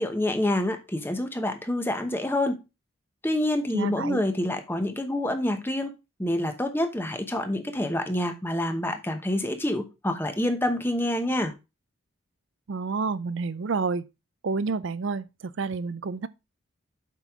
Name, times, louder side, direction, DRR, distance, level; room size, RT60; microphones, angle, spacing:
voice 1, 0.0-2.6 3.2-5.9 6.2-11.5, left 1 dB, 10° left, 0.9 m, -27 dB
voice 2, 3.7-4.2 12.7-14.1 14.4-16.3, right 4 dB, 60° right, 0.5 m, -29 dB
7.5 x 5.5 x 3.6 m
head